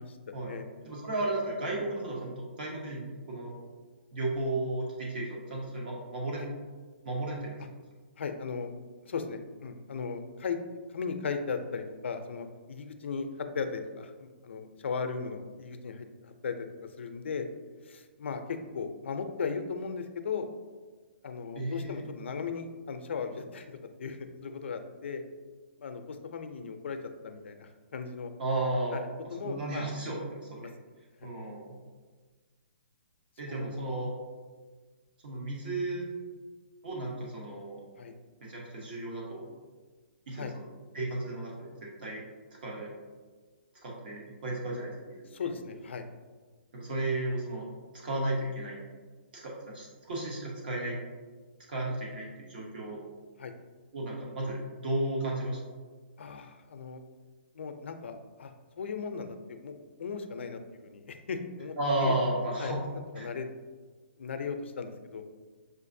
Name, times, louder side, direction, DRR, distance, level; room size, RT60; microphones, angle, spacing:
voice 1, 0.0-0.7 6.4-6.5 8.2-8.7 9.0-16.7 17.0-17.4 17.8-20.5 21.2-25.2 25.8-27.0 27.2-28.3 28.9-29.9 30.6-30.7 33.5-33.8 38.0-38.1 40.3-40.5 45.3-46.0 53.4-53.5 56.2-57.0 57.5-62.1 62.6-63.5 64.2-65.2, left 5 dB, 75° left, 7 dB, 0.5 m, -37 dB
voice 2, 0.8-3.5 4.1-6.4 7.0-7.6 21.6-22.0 28.4-29.0 29.4-30.7 31.2-31.8 33.4-34.1 35.2-36.1 36.8-37.8 38.4-39.4 40.3-40.6 40.9-42.2 42.6-42.9 43.8-45.2 46.7-47.7 48.0-48.8 49.3-51.0 51.7-53.0 53.9-55.6 61.8-62.8 63.2-63.3, right 2 dB, 50° right, -3 dB, 0.9 m, -33 dB
6.2 x 2.5 x 2.6 m, 1.4 s
hypercardioid pair, 165°, 6 cm